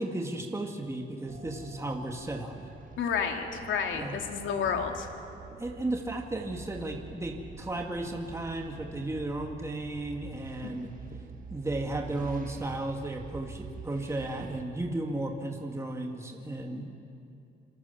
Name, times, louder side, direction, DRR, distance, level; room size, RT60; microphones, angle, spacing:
voice 1, 0.0-2.5 3.9-4.2 5.6-10.9 11.5-16.9, right 2 dB, 15° right, 1 dB, 2.6 m, -34 dB
sound 1, 1.3-14.6, right 5 dB, 45° right, 1.8 m, -46 dB
voice 2, 3.0-5.1 10.6-10.7 16.7-16.8, left 6 dB, 75° left, 3 dB, 2.8 m, -31 dB
26.5 x 26.0 x 7.4 m, 2.6 s
cardioid pair, 90°, 20 cm